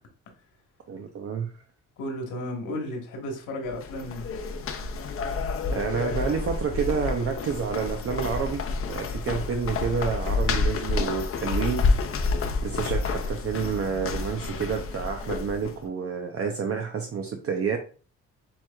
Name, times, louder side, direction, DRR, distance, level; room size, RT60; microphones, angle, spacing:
voice 1, 0.9-1.5 5.7-8.6 8.9-11.8 12.6-17.8, right 6 dB, 50° right, 0.7 m, -29 dB
voice 2, 2.0-4.3, left 1 dB, 85° left, 1.6 m, -33 dB
sound 1, 3.7-15.8, left 4 dB, 45° left, 0.7 m, -29 dB
7.2 x 3.1 x 2.4 m
cardioid pair, 90°, 30 cm